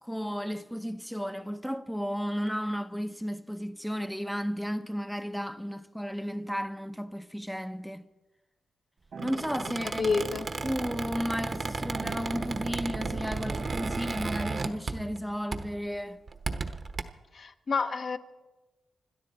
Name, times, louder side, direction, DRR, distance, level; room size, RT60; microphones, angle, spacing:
voice 1, 0.0-8.0 9.2-10.1 10.6-16.2, equal, ahead, 0.7 m, -33 dB
Squeak, 9.1-15.2 15.5-15.8 16.3-17.0, right 4 dB, 45° right, 1.0 m, -34 dB
sound 1, 9.1-14.8, right 4 dB, 70° right, 1.9 m, -46 dB
voice 2, 10.0-10.5 17.3-18.2, left 4 dB, 55° left, 1.0 m, -28 dB
27.5 x 12.5 x 4.1 m
cardioid pair, 80°, 0 cm